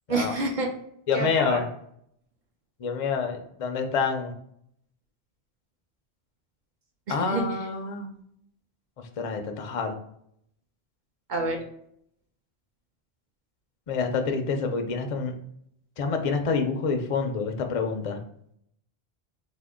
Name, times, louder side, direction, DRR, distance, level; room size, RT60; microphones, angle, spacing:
voice 1, 0.1-0.7 1.1-1.6 7.1-7.4 11.3-11.6, right 2 dB, 55° right, 1 dB, 0.7 m, -28 dB
voice 2, 1.1-1.7 2.8-4.4 7.1-8.1 9.0-9.9 13.9-15.4 16.0-18.2, left 5 dB, 55° left, 5 dB, 0.4 m, -27 dB
3.5 x 2.1 x 3.5 m, 0.70 s
omnidirectional pair, 1.1 m